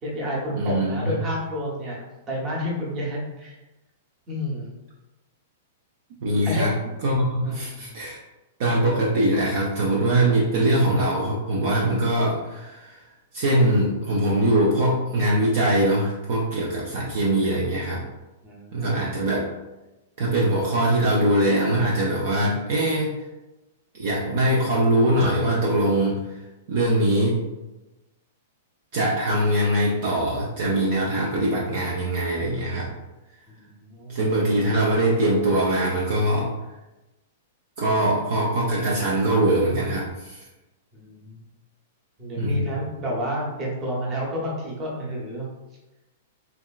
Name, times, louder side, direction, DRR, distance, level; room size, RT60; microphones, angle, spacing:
voice 1, 0.0-3.6 4.3-4.7 6.4-6.7 7.4-8.0 18.4-19.1 33.5-34.2 40.9-41.5 42.2-45.5, equal, 25° right, -3 dB, 0.9 m, -30 dB
voice 2, 0.5-1.2 6.2-6.7 7.0-8.2 8.6-13.0 13.3-18.0 18.7-19.5 20.2-23.1 23.9-26.4 26.7-27.4 28.9-32.9 34.1-36.5 37.8-40.4 42.4-42.7, right 1 dB, 50° right, -4 dB, 0.5 m, -22 dB
3.6 x 2.3 x 2.3 m, 1.0 s
figure-of-eight pair, 100°, 0 cm